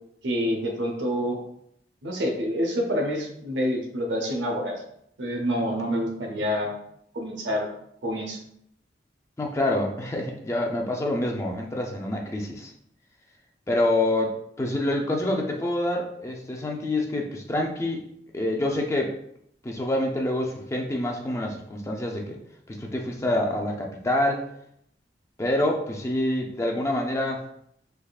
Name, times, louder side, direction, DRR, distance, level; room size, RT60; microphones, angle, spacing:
voice 1, 0.2-1.4 2.0-4.8 5.2-6.7 7.1-7.7 8.0-8.4, equal, 85° right, 2 dB, 0.7 m, -27 dB
voice 2, 9.4-12.7 13.7-18.0 18.3-19.1 19.6-22.4 22.7-24.4 25.4-27.4, left 1 dB, 15° left, 0 dB, 0.4 m, -26 dB
3.5 x 3.2 x 2.3 m, 0.72 s
head